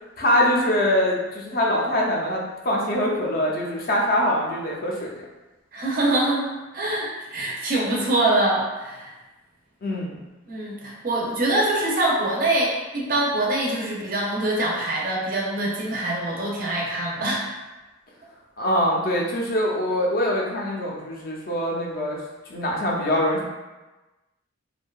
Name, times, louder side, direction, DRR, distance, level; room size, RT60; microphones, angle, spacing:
voice 1, 0.2-5.1 9.8-10.2 18.6-22.2 22.5-23.5, left 1 dB, 45° left, -2 dB, 0.4 m, -23 dB
voice 2, 5.7-6.5 6.7-9.1 10.5-17.5, right 1 dB, 40° right, -3 dB, 0.4 m, -24 dB
2.6 x 2.1 x 2.2 m, 1.1 s
head